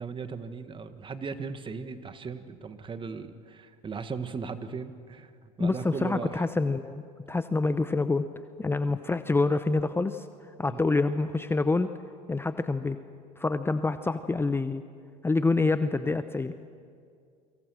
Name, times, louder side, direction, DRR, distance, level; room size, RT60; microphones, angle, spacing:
voice 1, 0.0-6.4 10.7-10.8, right 5 dB, 25° right, 10 dB, 1.7 m, -37 dB
voice 2, 5.6-7.0 7.3-8.3 8.6-10.3 10.6-11.9 12.3-13.0 13.4-14.8 15.2-16.5, left 3 dB, 10° left, 11 dB, 0.8 m, -26 dB
29.5 x 24.5 x 6.4 m, 2.2 s
hypercardioid pair, 85°, 19 cm